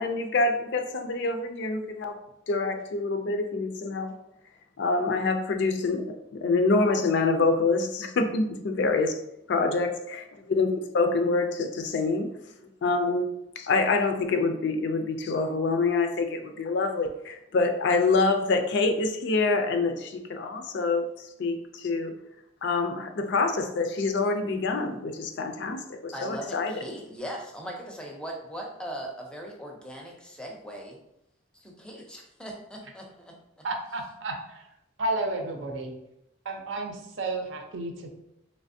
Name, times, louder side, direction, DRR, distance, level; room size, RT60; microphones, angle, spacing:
voice 1, 0.0-2.2 2.5-4.1 4.8-9.2 9.5-12.3 12.8-13.3 13.6-22.2 22.6-26.7, left 3 dB, 60° left, 7 dB, 0.4 m, -26 dB
voice 2, 26.1-31.0 31.6-33.6, equal, 5° left, 0 dB, 0.5 m, -39 dB
voice 3, 33.6-34.6 35.0-35.9 36.4-38.1, right 2 dB, 70° right, 3 dB, 0.6 m, -32 dB
3.3 x 3.1 x 2.6 m, 0.83 s
head